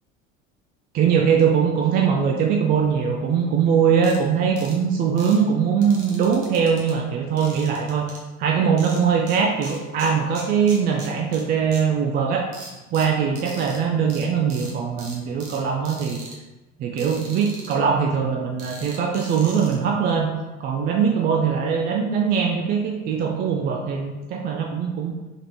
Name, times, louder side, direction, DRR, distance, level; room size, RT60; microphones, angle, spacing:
voice 1, 0.9-8.1 8.4-12.5 12.9-16.2 16.8-20.3 20.6-25.1, right 6 dB, 25° right, 1 dB, 0.4 m, -21 dB
sound 1, 4.0-4.2 4.6-4.7 5.2-5.4 5.8-6.9 7.4-8.2 8.8-9.4 9.6-11.4 11.7-11.8 12.5-13.8 14.1-14.2 14.5-14.7 15.0-15.6 15.8-16.3 17.0-17.7 18.6-19.7, right 3 dB, 55° right, 1.2 m, -40 dB
3.7 x 3.6 x 3.0 m, 1.1 s
figure-of-eight pair, 65°, 40 cm